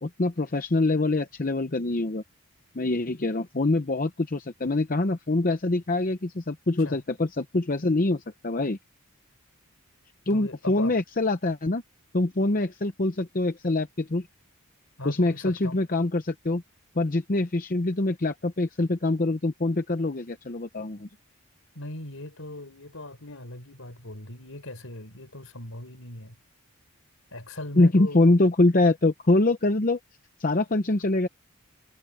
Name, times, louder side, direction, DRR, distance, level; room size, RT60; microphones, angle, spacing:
voice 1, 0.0-2.2 2.7-8.8 10.3-11.8 12.1-14.3 15.0-16.6 17.0-21.1 27.8-30.0 30.4-31.3, left 2 dB, 40° left, 0.7 m, -24 dB
voice 2, 10.3-10.9 15.0-15.8 21.7-26.4 27.3-28.2, left 1 dB, 70° left, 4.5 m, -39 dB
head